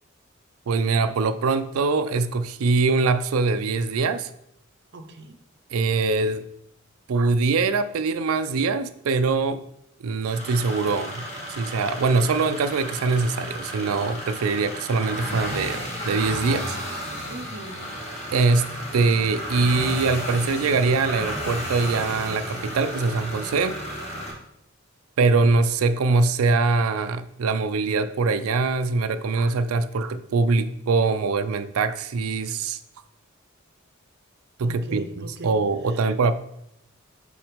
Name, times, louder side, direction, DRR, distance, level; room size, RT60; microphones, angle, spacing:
voice 1, 0.7-4.3 5.7-6.4 7.1-9.6 10.0-11.3 11.6-16.8 18.3-23.8 25.2-32.8 34.6-36.3, right 4 dB, 90° right, 0.4 m, -23 dB
voice 2, 4.9-5.4 17.3-17.9 34.6-35.6 35.9-36.1, right 1 dB, 55° right, 0.7 m, -40 dB
sound 1, 10.2-24.3, equal, 35° left, 1.5 m, -33 dB
5.9 x 3.9 x 5.0 m
head